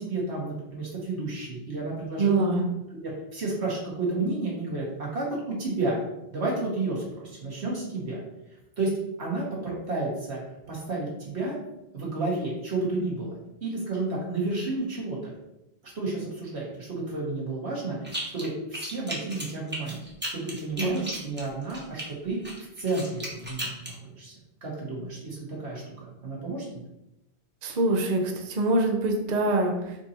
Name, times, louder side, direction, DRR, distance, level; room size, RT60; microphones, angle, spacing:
voice 1, 0.0-2.5 2.9-6.0 6.3-8.2 8.8-8.9 9.2-10.4 10.7-11.6 11.9-13.3 13.6-15.2 15.8-22.4 22.8-24.3 24.6-26.8, right 2 dB, 90° right, -4 dB, 1.9 m, -31 dB
voice 2, 2.2-2.6 20.8-21.0 27.6-30.0, right 2 dB, 45° right, 2 dB, 0.7 m, -24 dB
sound 1, 18.0-18.5 18.7-22.1 22.4-23.9, right 1 dB, 10° right, 1.1 m, -35 dB
4.5 x 2.7 x 4.2 m, 0.88 s
omnidirectional pair, 1.1 m